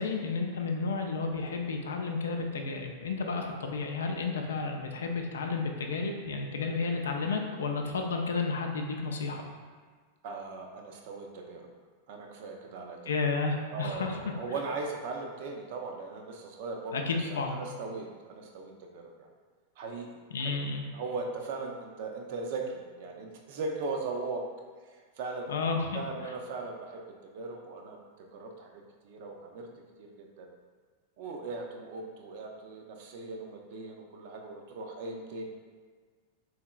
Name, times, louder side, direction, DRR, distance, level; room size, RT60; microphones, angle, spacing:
voice 1, 0.0-9.4 13.1-14.2 16.9-17.6 20.3-20.8 25.5-26.3, left 4 dB, 65° left, 3 dB, 0.4 m, -32 dB
voice 2, 10.2-11.6 12.1-13.0 13.4-19.3 19.8-20.1 20.4-20.6 20.9-24.4 24.9-25.6 25.9-28.0 28.3-29.7 30.0-30.5 31.2-35.5, right 3 dB, 50° right, 2 dB, 0.4 m, -39 dB
3.6 x 3.1 x 2.3 m, 1.5 s
figure-of-eight pair, 90°, 0 cm